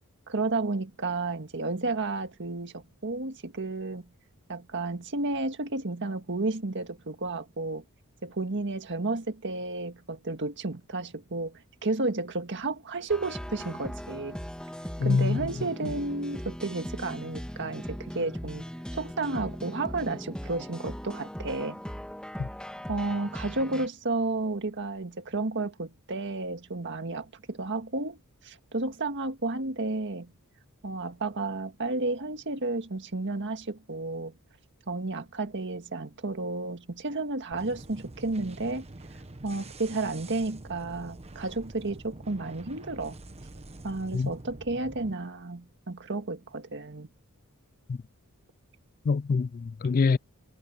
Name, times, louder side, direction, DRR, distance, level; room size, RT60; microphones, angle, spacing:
voice 1, 0.3-4.1 4.5-7.8 8.2-14.4 15.0-18.7 18.9-21.8 22.9-28.2 28.4-30.3 30.8-34.3 34.9-38.9 39.4-43.2 43.8-47.1, right 2 dB, 55° right, 1.8 m, -32 dB
sound 1, 13.1-23.9, equal, 5° left, 1.7 m, -39 dB
voice 2, 15.0-15.4 22.4-22.5 44.1-44.3 47.9-48.0 49.1-50.2, left 4 dB, 40° left, 0.3 m, -25 dB
sound 2, 37.5-45.1, right 2 dB, 30° right, 1.2 m, -46 dB
head